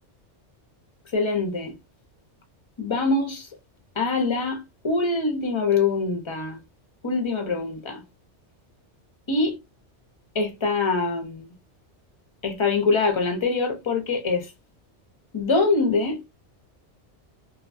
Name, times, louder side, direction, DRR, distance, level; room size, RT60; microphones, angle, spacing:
voice 1, 1.1-1.7 2.8-3.5 4.0-6.6 7.0-8.0 9.3-9.6 10.3-11.5 12.4-14.5 15.3-16.2, left 3 dB, 35° left, 0.5 m, -24 dB
2.6 x 2.2 x 2.5 m
omnidirectional pair, 1.2 m